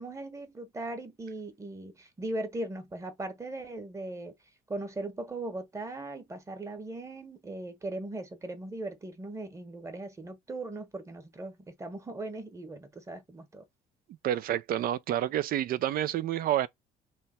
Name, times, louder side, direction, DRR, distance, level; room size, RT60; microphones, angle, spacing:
voice 1, 0.0-4.3 4.7-13.6, right 2 dB, 15° right, 1.1 m, -39 dB
voice 2, 14.2-16.7, right 12 dB, 60° right, 0.5 m, -29 dB
3.3 x 2.9 x 4.2 m
cardioid pair, 110°, 17 cm